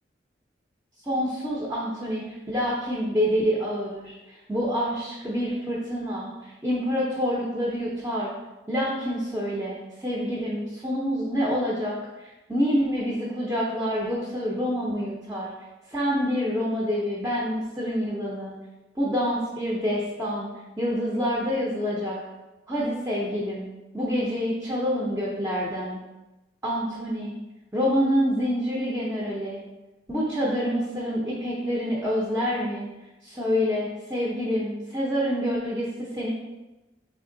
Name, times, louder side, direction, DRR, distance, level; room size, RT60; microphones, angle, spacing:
voice 1, 1.0-4.2 4.5-8.3 8.7-15.5 15.9-18.5 19.0-20.5 20.8-22.2 22.7-23.7 23.9-26.0 26.6-27.3 27.7-29.6 30.1-32.9 33.2-36.3, equal, 10° right, -5 dB, 0.6 m, -27 dB
3.5 x 3.5 x 3.8 m, 1.0 s
head